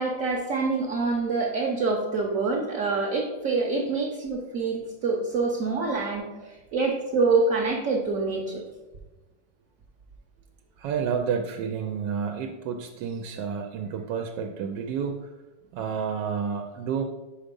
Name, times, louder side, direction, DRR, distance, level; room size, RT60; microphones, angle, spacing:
voice 1, 0.0-6.2 6.7-8.6, right 3 dB, 55° right, -1 dB, 1.1 m, -26 dB
voice 2, 10.8-15.3 15.7-17.0, right 6 dB, 85° right, 4 dB, 1.2 m, -30 dB
5.1 x 4.8 x 5.2 m, 1.1 s
omnidirectional pair, 1.9 m